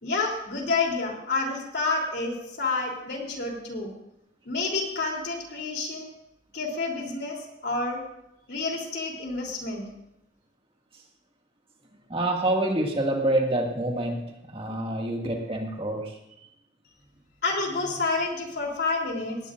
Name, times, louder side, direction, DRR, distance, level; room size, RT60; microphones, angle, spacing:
voice 1, 0.0-3.9 4.4-6.1 6.5-8.0 8.5-9.8 17.4-19.4, left 3 dB, 60° left, 0 dB, 3.4 m, -29 dB
voice 2, 12.1-14.2 14.5-16.1, right 1 dB, 30° right, 1 dB, 2.1 m, -26 dB
19.0 x 18.0 x 2.6 m, 0.84 s
head